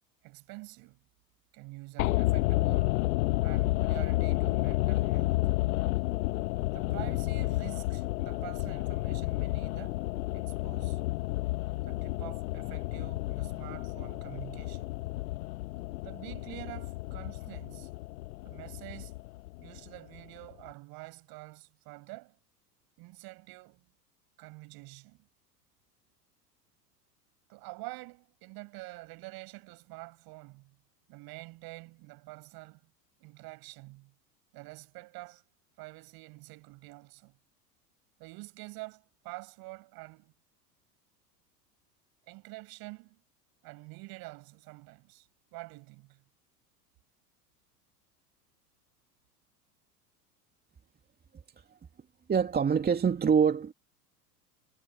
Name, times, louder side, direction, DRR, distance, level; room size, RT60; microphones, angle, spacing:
voice 1, 0.2-1.0 1.5-3.1 3.4-5.5 6.7-10.0 10.3-11.1 11.8-14.9 16.0-17.9 18.4-19.1 19.6-22.4 23.0-23.9 24.4-25.3 27.5-30.8 31.1-32.9 33.2-34.1 34.5-35.4 35.8-37.4 38.2-40.3 42.3-43.2 43.6-46.2, right 23 dB, 50° right, 6.6 m, -47 dB
sound 1, 2.0-20.2 20.4-20.5, left 19 dB, 60° left, 1.3 m, -31 dB
voice 2, 52.3-53.7, right 6 dB, 20° right, 2.3 m, -25 dB
figure-of-eight pair, 85°, 48 cm